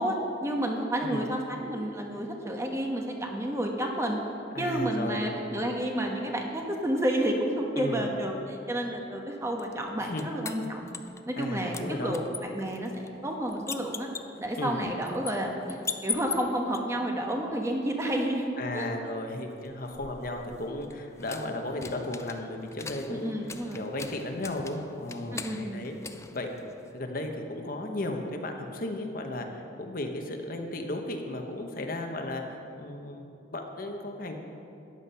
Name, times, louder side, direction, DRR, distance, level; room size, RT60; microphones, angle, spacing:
voice 1, 0.0-4.2 4.6-10.9 11.3-14.1 14.4-18.9 23.1-23.8 25.3-25.8, right 1 dB, 15° right, 1 dB, 1.2 m, -30 dB
voice 2, 4.5-5.3 7.8-8.1 10.0-10.2 11.4-12.2 14.6-14.9 18.6-23.3 23.7-25.9 26.3-26.5 26.9-32.4 32.8-33.2 33.5-34.4, left 1 dB, 50° left, 3 dB, 1.1 m, -35 dB
sound 1, 9.6-11.5 11.7-16.8 19.6-27.1, left 5 dB, 15° left, 0.4 m, -41 dB
14.0 x 9.6 x 5.6 m, 2.7 s
head